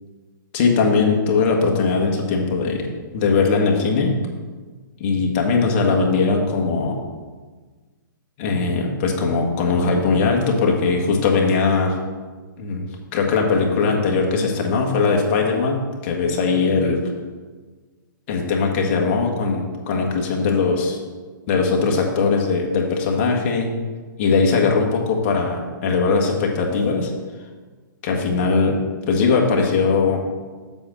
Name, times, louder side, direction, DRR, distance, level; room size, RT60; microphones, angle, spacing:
voice 1, 0.5-2.9 3.1-4.1 5.0-7.0 8.4-12.0 12.6-12.9 13.1-17.0 18.3-21.0 21.5-23.7 24.2-27.1 28.0-28.8 29.1-30.2, left 4 dB, 30° left, 1 dB, 1.4 m, -20 dB
7.7 x 5.2 x 6.3 m, 1.4 s
hypercardioid pair, 160°, 11 cm